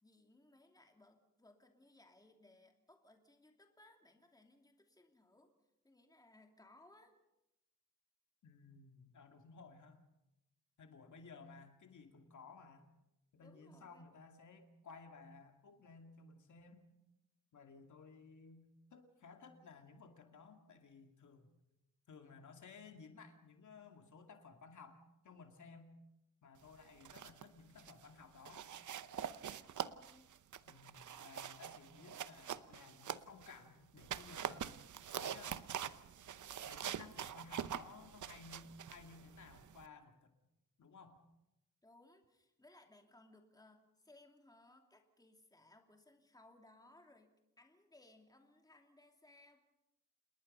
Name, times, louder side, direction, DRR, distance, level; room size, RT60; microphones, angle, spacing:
voice 1, 0.0-5.5 5.8-7.1 13.4-14.0 29.3-30.3 41.8-49.6, left 2 dB, 10° left, 3 dB, 2.7 m, -65 dB
voice 2, 8.4-10.0 10.8-12.9 13.3-16.9 17.5-21.5 22.1-26.0 26.4-28.7 30.6-35.7 36.7-40.3 40.8-41.2, left 4 dB, 65° left, 5 dB, 2.5 m, -57 dB
sound 1, 26.8-27.5 27.8-28.1 28.5-33.6 34.0-39.9, right 9 dB, 65° right, 0.9 m, -45 dB
28.0 x 20.5 x 5.5 m, 0.89 s
wide cardioid pair, 140°, 33 cm